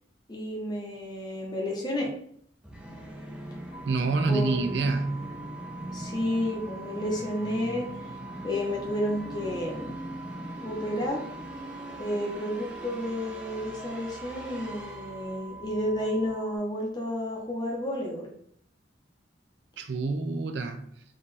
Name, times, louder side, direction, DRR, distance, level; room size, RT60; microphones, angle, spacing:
voice 1, 0.3-2.1 4.3-4.6 5.9-7.9 8.4-10.0 10.6-11.2 12.0-18.3, left 1 dB, 25° left, 0.8 m, -31 dB
Musical instrument, 2.6-16.3, equal, 5° right, 0.5 m, -41 dB
sound 1, 3.7-16.6, right 4 dB, 75° left, 0.9 m, -45 dB
voice 2, 3.9-5.2 19.8-20.8, right 3 dB, 70° right, 0.5 m, -27 dB
3.9 x 2.4 x 4.0 m
head